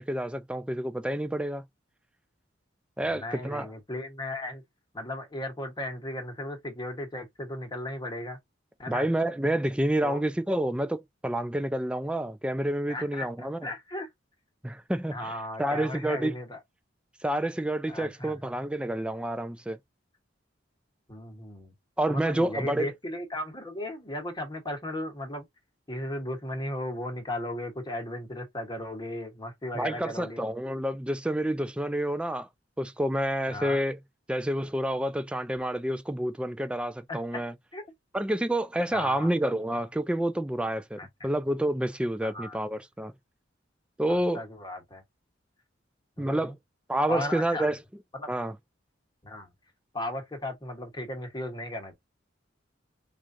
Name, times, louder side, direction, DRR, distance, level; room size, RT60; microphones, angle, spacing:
voice 1, 0.0-1.6 3.0-3.7 8.9-13.6 14.6-16.3 17.2-19.8 22.0-22.9 29.7-32.5 32.8-34.0 34.3-37.5 38.1-43.1 44.0-44.4 46.2-46.5 46.9-47.8 48.3-48.5, right 1 dB, 5° right, 0.4 m, -29 dB
voice 2, 3.0-4.6 4.9-8.4 8.8-9.1 10.0-10.2 12.9-14.1 15.1-16.6 17.9-18.4 21.1-21.7 22.1-25.5 25.9-30.4 33.5-33.8 37.1-37.2 37.7-37.8 38.9-39.3 41.0-41.3 42.2-42.6 44.1-45.0 46.2-46.5 47.1-47.7 48.2-48.3 49.2-49.5 49.9-51.9, left 1 dB, 25° left, 1.2 m, -36 dB
4.8 x 2.5 x 2.6 m
head